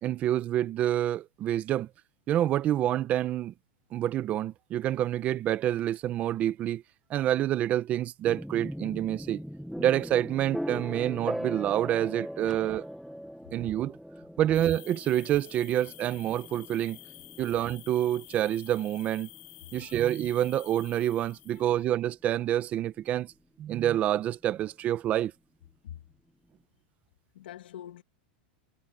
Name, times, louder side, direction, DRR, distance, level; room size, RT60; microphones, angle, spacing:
voice 1, 0.0-1.9 2.3-3.5 3.9-6.8 7.1-9.4 9.8-12.9 13.5-13.9 14.4-17.0 17.4-19.3 19.7-23.3 23.6-25.3, right 12 dB, 25° right, 0.9 m, -27 dB
sound 1, 8.3-22.0, equal, ahead, 1.0 m, -40 dB
sound 2, 14.5-21.8, left 22 dB, 50° left, 1.8 m, -50 dB
voice 2, 27.3-28.0, left 11 dB, 85° left, 2.0 m, -45 dB
supercardioid pair, 155°, 5 cm